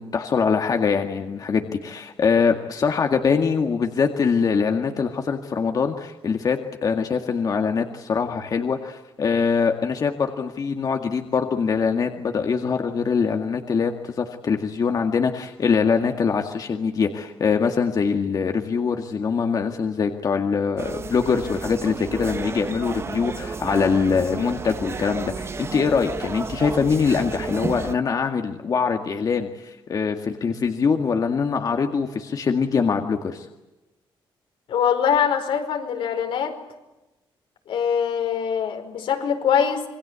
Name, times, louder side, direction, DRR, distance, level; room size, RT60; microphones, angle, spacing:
voice 1, 0.0-33.5, left 5 dB, 45° left, 4 dB, 2.0 m, -23 dB
sound 1, 20.8-27.9, right 4 dB, 30° right, 1.0 m, -32 dB
voice 2, 34.7-36.5 37.7-39.9, left 7 dB, 85° left, 4 dB, 5.0 m, -23 dB
27.0 x 22.5 x 8.3 m, 1.0 s
cardioid pair, 135°, 9 cm